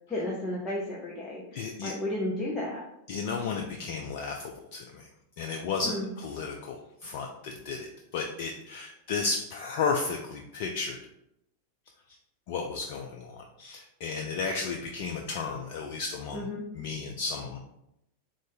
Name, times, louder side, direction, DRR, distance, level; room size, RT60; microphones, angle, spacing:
voice 1, 0.1-2.8 5.8-6.1 16.3-16.6, left 1 dB, 10° left, -6 dB, 0.7 m, -33 dB
voice 2, 1.5-1.9 3.1-5.1 5.4-11.0 12.5-16.5 16.7-17.6, left 4 dB, 50° left, 2 dB, 0.3 m, -33 dB
3.7 x 2.5 x 3.8 m, 0.81 s
figure-of-eight pair, 90°, 0 cm